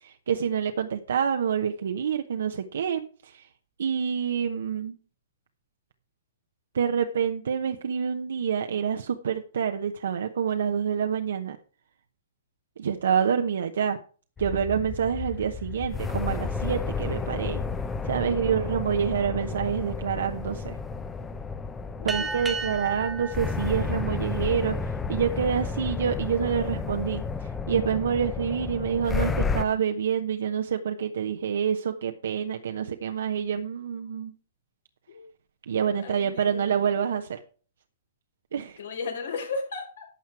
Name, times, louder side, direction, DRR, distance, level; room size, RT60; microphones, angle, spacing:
voice 1, 0.0-3.5 3.8-4.9 6.7-11.6 12.8-14.0 14.4-17.6 18.0-20.7 22.0-24.8 25.1-27.2 27.7-34.3 35.7-37.4 38.5-38.8, right 7 dB, 75° right, 6 dB, 0.9 m, -27 dB
sound 1, 14.4-29.6, left 4 dB, 15° left, 0.8 m, -32 dB
sound 2, 22.1-25.0, right 4 dB, 10° right, 1.2 m, -35 dB
voice 2, 36.0-36.9 38.8-40.1, left 4 dB, 70° left, 2 dB, 4.9 m, -35 dB
12.0 x 7.3 x 4.7 m, 0.41 s
hypercardioid pair, 130°, 0 cm